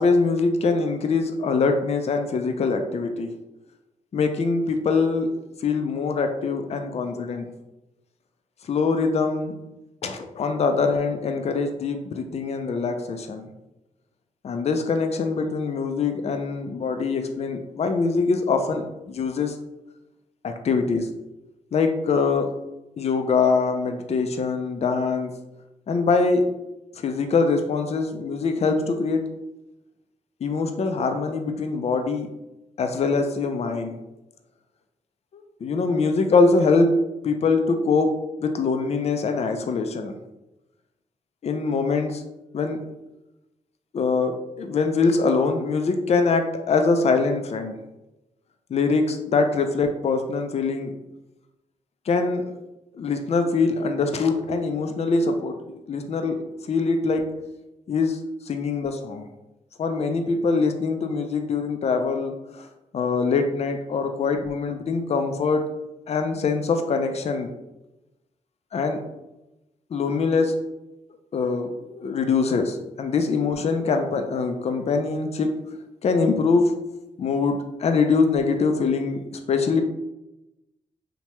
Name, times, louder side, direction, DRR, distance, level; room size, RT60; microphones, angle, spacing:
voice 1, 0.0-3.3 4.1-5.3 5.6-7.5 8.6-9.5 10.0-13.5 14.4-19.6 20.4-21.1 21.7-22.5 23.0-25.3 25.9-26.5 27.0-29.2 30.4-32.3 32.8-34.0 35.6-36.9 37.2-40.2 41.4-42.2 42.5-42.8 43.9-47.7 48.7-51.0 52.1-52.6 52.9-55.6 55.9-56.4 56.7-57.3 57.9-58.2 58.5-59.3 59.8-62.7 62.9-65.6 66.1-67.5 68.7-69.0 69.9-70.5 71.3-75.5 76.0-76.7 77.2-79.8, left 4 dB, 50° left, 6 dB, 0.4 m, -23 dB
2.8 x 2.1 x 3.1 m, 0.96 s
cardioid pair, 60°, 14 cm